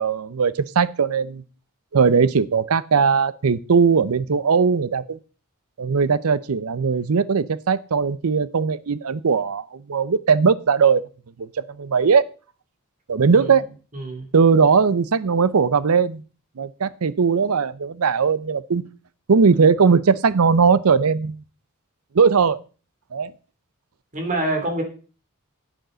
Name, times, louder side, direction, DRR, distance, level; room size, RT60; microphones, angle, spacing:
voice 1, 0.0-1.4 1.9-5.2 5.8-11.0 11.4-12.2 13.1-13.6 14.3-16.2 16.6-18.8 19.3-21.4 22.1-22.6 23.1-23.3, right 5 dB, 80° right, 17 dB, 0.6 m, -19 dB
voice 2, 13.9-14.3 24.1-24.8, right 1 dB, 35° right, 4 dB, 2.9 m, -26 dB
10.5 x 9.2 x 3.9 m, 0.37 s
head